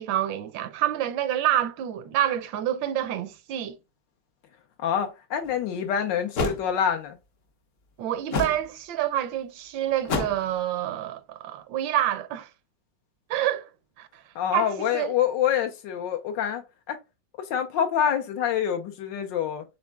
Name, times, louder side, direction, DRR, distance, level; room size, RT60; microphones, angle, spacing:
voice 1, 0.0-3.8 8.0-12.5 13.3-13.7 14.0-14.1 14.5-15.1, right 12 dB, 90° right, 1.4 m, -27 dB
voice 2, 4.8-7.2 14.3-17.0 17.4-19.6, left 9 dB, 80° left, 1.5 m, -26 dB
sound 1, 5.4-5.5 6.4-6.6 8.3-8.6 10.1-10.5, left 3 dB, 55° left, 1.0 m, -27 dB
6.2 x 3.6 x 2.3 m
omnidirectional pair, 2.0 m